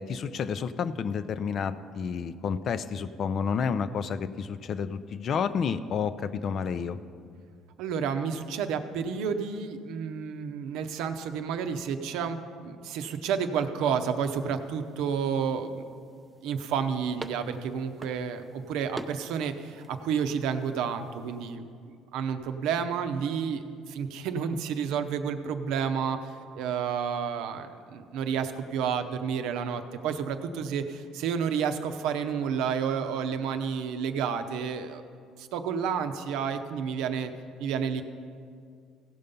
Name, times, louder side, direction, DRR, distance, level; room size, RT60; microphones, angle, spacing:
voice 1, 0.0-7.0, left 6 dB, 50° left, 13 dB, 0.4 m, -30 dB
voice 2, 7.8-12.4 12.6-15.8 16.4-35.0 35.4-37.3 37.6-38.0, right 7 dB, 80° right, 8 dB, 0.7 m, -30 dB
sound 1, 13.9-21.6, right 2 dB, 15° right, 0.5 m, -48 dB
16.0 x 5.5 x 5.3 m, 2.2 s
cardioid pair, 100°, 0 cm